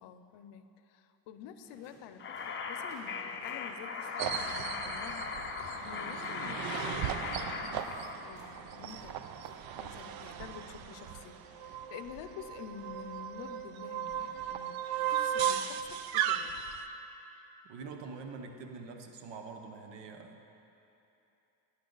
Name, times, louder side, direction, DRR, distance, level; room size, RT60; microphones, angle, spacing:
voice 1, 0.0-5.4 5.8-7.9 8.2-9.2 9.8-14.7 15.1-16.6, left 8 dB, 85° left, 10 dB, 0.6 m, -49 dB
sound 1, 1.6-10.4, right 1 dB, 40° right, 2.2 m, -60 dB
sound 2, 2.2-8.1, left 5 dB, 30° left, 0.6 m, -38 dB
sound 3, 4.2-16.8, right 9 dB, 60° right, 0.5 m, -36 dB
voice 2, 17.6-20.5, right 4 dB, 90° right, 4 dB, 1.0 m, -45 dB
10.5 x 10.0 x 3.9 m, 2.9 s
cardioid pair, 150°, 42 cm